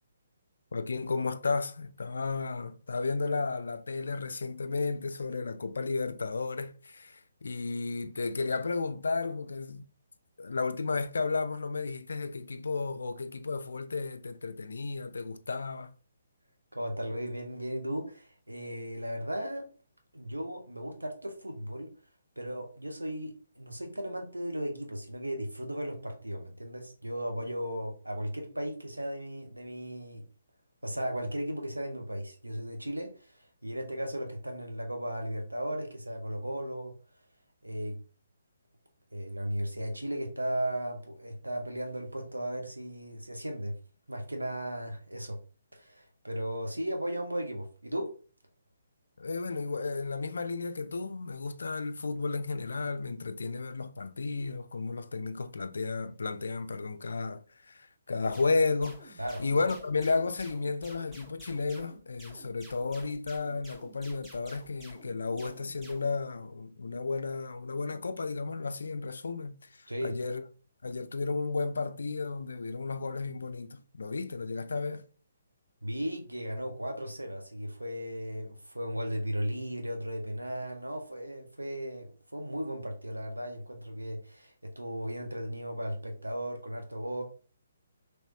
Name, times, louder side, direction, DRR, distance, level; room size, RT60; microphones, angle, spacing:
voice 1, 0.7-9.9 10.4-15.9 49.2-70.4 70.8-75.0, left 4 dB, 60° left, 0.3 m, -33 dB
voice 2, 16.7-19.7 20.1-21.9 22.4-30.2 30.8-36.9 37.6-38.0 39.1-43.8 44.1-45.4 45.7-48.2 59.2-59.4 69.9-70.2 75.8-87.2, equal, 80° right, 0.8 m, -36 dB
sound 1, 58.3-66.2, equal, 10° right, 0.8 m, -52 dB
3.1 x 3.1 x 2.6 m
figure-of-eight pair, 135°, 0 cm